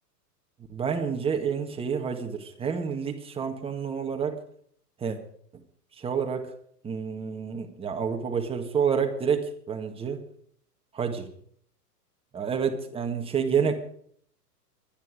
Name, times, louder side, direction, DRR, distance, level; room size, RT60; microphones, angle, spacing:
voice 1, 0.7-4.4 5.0-5.2 5.5-5.6 6.0-6.5 6.8-10.2 10.9-11.3 12.3-13.7, right 6 dB, 10° right, 4 dB, 1.7 m, -29 dB
24.0 x 10.5 x 5.0 m, 0.62 s
figure-of-eight pair, 105°, 48 cm